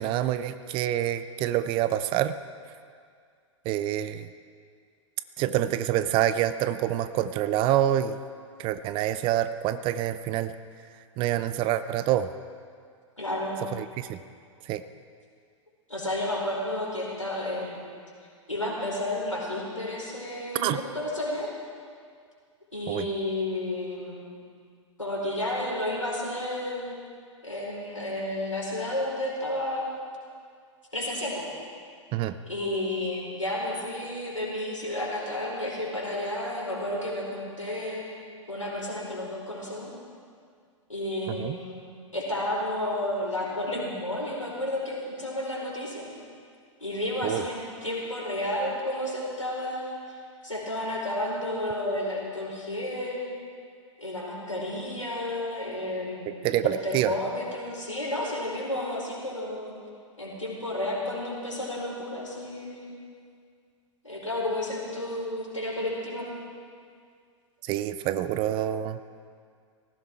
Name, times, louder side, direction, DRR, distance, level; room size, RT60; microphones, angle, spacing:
voice 1, 0.0-2.4 3.6-4.3 5.4-8.2 8.6-10.5 11.2-12.3 13.7-14.2 14.6-14.8 20.5-20.8 22.9-23.1 32.1-32.4 41.3-41.6 47.2-47.4 56.3-57.1 67.6-69.0, right 12 dB, 30° right, 12 dB, 0.7 m, -27 dB
voice 2, 13.2-13.6 15.9-17.9 18.5-21.5 22.7-24.3 25.0-27.1 27.4-30.0 30.9-31.5 32.4-38.1 38.5-39.9 40.9-46.1 46.8-53.3 54.0-59.7 60.2-62.9 64.0-66.3, left 1 dB, 90° left, -4 dB, 4.7 m, -32 dB
18.5 x 15.5 x 4.6 m, 2.2 s
figure-of-eight pair, 100°, 16 cm